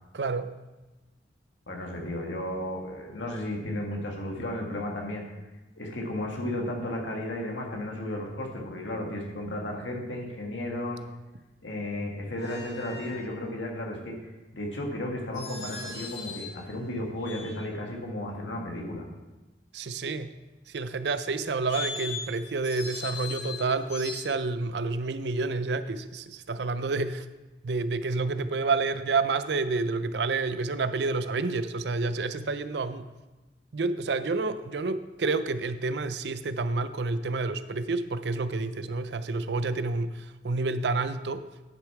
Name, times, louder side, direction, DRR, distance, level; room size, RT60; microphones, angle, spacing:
voice 1, 0.1-0.5 19.7-20.3 20.7-27.3 27.6-33.1 33.7-41.4, right 3 dB, 65° right, 12 dB, 0.5 m, -29 dB
voice 2, 1.7-5.3 5.8-11.0 11.6-19.1, left 1 dB, 90° left, 0 dB, 1.8 m, -34 dB
sound 1, 12.4-13.3 15.3-16.6 17.2-17.9 21.5-24.2, left 4 dB, 70° left, 1.5 m, -39 dB
10.5 x 6.4 x 4.8 m, 1.1 s
head